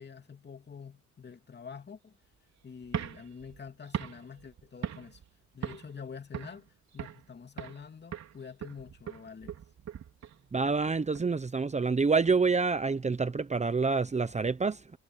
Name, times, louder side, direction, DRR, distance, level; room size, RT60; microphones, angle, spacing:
voice 1, 0.0-2.1 2.6-5.2 5.5-9.5, left 6 dB, 35° left, 3.1 m, -46 dB
sound 1, 2.8-5.3 5.6-6.0 6.3-7.3 7.6-7.9 8.1-11.2, right 9 dB, 60° right, 4.7 m, -40 dB
voice 2, 10.5-15.0, right 4 dB, 25° right, 1.0 m, -27 dB
cardioid pair, 90°, 30 cm